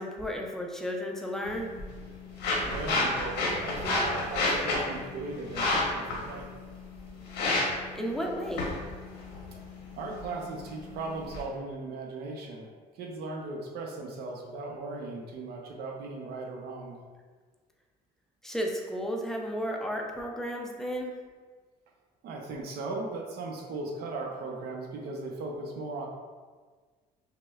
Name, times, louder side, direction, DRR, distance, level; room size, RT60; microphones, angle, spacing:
voice 1, 0.0-1.7 7.9-8.7 18.4-21.1, equal, 5° left, 0 dB, 0.5 m, -33 dB
sound 1, 1.4-11.4, left 2 dB, 85° left, 1.0 m, -32 dB
voice 2, 2.6-6.5 9.9-17.0 22.2-26.1, right 3 dB, 70° right, 1 dB, 0.7 m, -38 dB
5.7 x 2.1 x 2.3 m, 1.5 s
cardioid pair, 110°, 17 cm